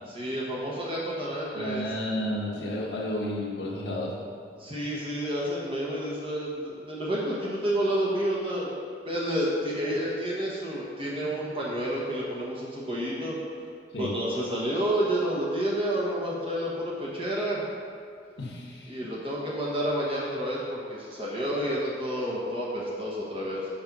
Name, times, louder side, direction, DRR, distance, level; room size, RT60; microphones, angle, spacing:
voice 1, 0.1-1.8 4.6-8.8 9.1-13.3 14.0-17.6 18.9-23.7, equal, 30° right, -5 dB, 1.1 m, -30 dB
voice 2, 1.5-4.2 13.9-14.1 18.4-19.0, left 1 dB, 85° left, -3 dB, 1.4 m, -32 dB
5.8 x 5.3 x 5.4 m, 2.3 s
head